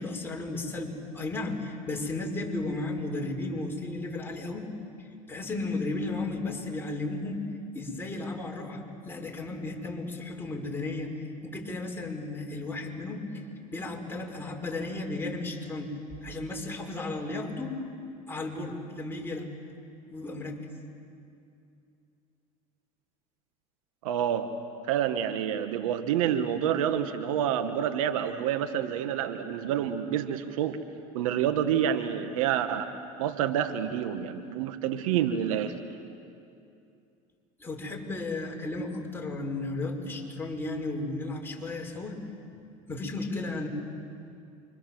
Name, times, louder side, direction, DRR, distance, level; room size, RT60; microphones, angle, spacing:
voice 1, 0.0-4.6 5.3-7.4 7.7-13.4 13.7-17.8 18.3-19.5 20.1-20.6 37.6-42.2 42.9-43.7, left 2 dB, 15° left, 0 dB, 5.8 m, -34 dB
voice 2, 24.0-24.5 24.9-30.8 31.1-32.9 33.2-35.7, right 9 dB, 85° right, 9 dB, 1.5 m, -28 dB
28.0 x 26.0 x 7.8 m, 2.6 s
supercardioid pair, 90°, 17 cm